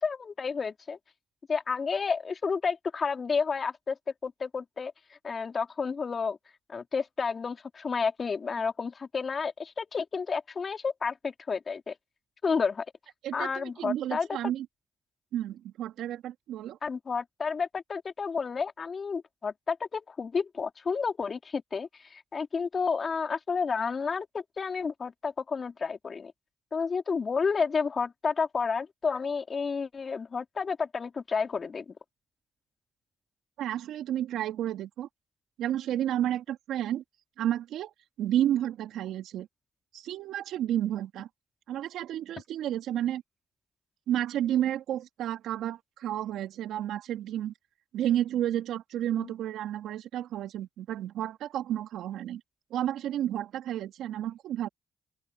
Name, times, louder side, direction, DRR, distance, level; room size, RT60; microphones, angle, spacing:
voice 1, 0.0-1.0 1.5-4.0 4.2-6.4 6.7-11.9 12.4-12.8 13.3-14.3 16.8-26.3 26.7-31.9 49.2-49.3, left 5 dB, 50° left, 3.1 m, -31 dB
voice 2, 13.2-14.7 15.3-16.8 33.6-35.1 35.6-37.0 37.4-37.9 38.2-39.5 39.9-41.3 41.7-43.2 44.1-47.5 47.9-52.4 52.7-54.7, right 11 dB, 80° right, 2.6 m, -31 dB
open air
supercardioid pair, 45°, 0 cm